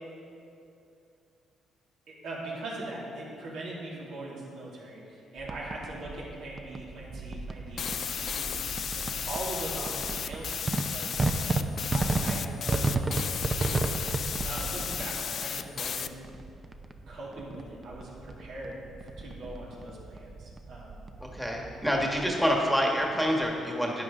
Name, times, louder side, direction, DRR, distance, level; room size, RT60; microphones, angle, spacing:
voice 1, 2.1-11.2 11.9-13.1 14.4-16.2 17.1-18.8 19.2-20.9, right 2 dB, 85° right, -5 dB, 2.7 m, -41 dB
sound 1, 5.4-23.5, right 3 dB, 30° right, 0.6 m, -34 dB
sound 2, 7.8-16.1, left 7 dB, 55° left, 0.4 m, -34 dB
voice 2, 21.2-24.0, equal, ahead, -1 dB, 1.4 m, -27 dB
11.5 x 9.0 x 3.7 m, 2.6 s
cardioid pair, 90°, 0 cm